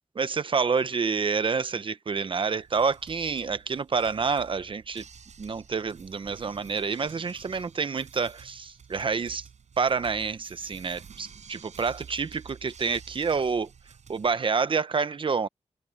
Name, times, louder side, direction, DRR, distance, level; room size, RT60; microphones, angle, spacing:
voice 1, 0.2-5.0 5.4-9.4 9.8-13.7 14.1-15.5, right 5 dB, 45° right, 0.9 m, -28 dB
sound 1, 2.6-14.3, right 6 dB, 80° right, 7.9 m, -50 dB
wide cardioid pair, 130°, 12 cm